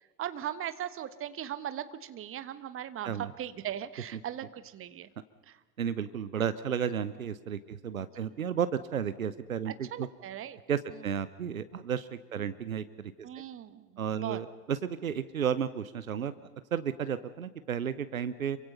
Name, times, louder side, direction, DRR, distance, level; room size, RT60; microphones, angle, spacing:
voice 1, 0.2-5.1 5.5-5.6 8.2-8.4 9.7-10.6 13.2-13.9 14.1-14.4, right 11 dB, 30° right, 13 dB, 1.4 m, -38 dB
voice 2, 5.8-10.1 10.7-13.1 14.0-16.3 16.7-18.6, right 8 dB, 80° right, 14 dB, 0.9 m, -33 dB
27.0 x 24.5 x 5.6 m, 1.3 s
figure-of-eight pair, 70°, 41 cm